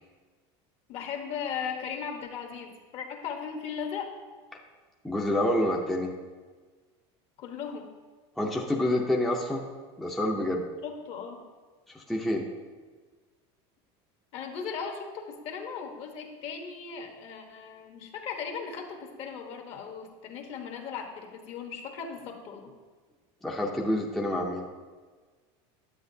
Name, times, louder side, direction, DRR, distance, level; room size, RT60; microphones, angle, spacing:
voice 1, 0.9-4.1 7.4-7.9 10.8-11.4 14.3-22.7, left 6 dB, 45° left, 3 dB, 1.1 m, -37 dB
voice 2, 5.0-6.1 8.4-9.7 10.0-10.7 11.9-12.4 23.4-24.6, left 1 dB, ahead, -2 dB, 0.6 m, -28 dB
10.0 x 8.1 x 2.7 m, 1.4 s
cardioid pair, 150°, 14 cm